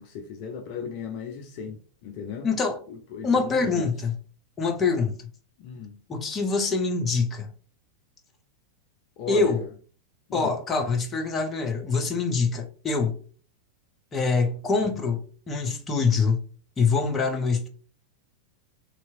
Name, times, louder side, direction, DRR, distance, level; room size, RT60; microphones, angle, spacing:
voice 1, 0.0-2.5 2.9-3.9 5.6-6.0 9.2-9.6 10.3-10.5, left 6 dB, 45° left, 0.5 m, -36 dB
voice 2, 2.4-2.8 3.2-4.1 4.6-5.2 6.1-7.5 9.3-9.6 10.3-13.2 14.1-16.4 16.8-17.7, left 4 dB, 20° left, 0.8 m, -25 dB
3.3 x 2.9 x 2.7 m
figure-of-eight pair, 90°, 0 cm